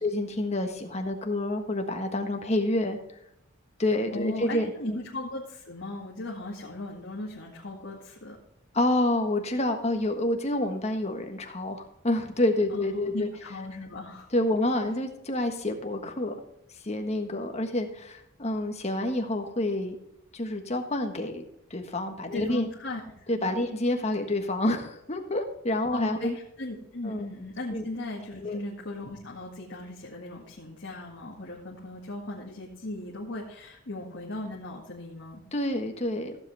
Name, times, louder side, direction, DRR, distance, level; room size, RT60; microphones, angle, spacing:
voice 1, 0.0-3.0 3.8-5.0 8.7-13.3 14.3-16.3 16.8-19.9 20.3-21.4 21.7-22.7 23.3-26.3 27.0-27.2 27.7-27.8 28.4-28.6 35.5-36.4, left 1 dB, 35° left, 5 dB, 1.4 m, -28 dB
voice 2, 4.1-8.4 12.7-14.3 22.3-23.6 25.9-35.4, left 2 dB, 60° left, -3 dB, 2.0 m, -37 dB
15.0 x 7.8 x 3.4 m, 0.78 s
head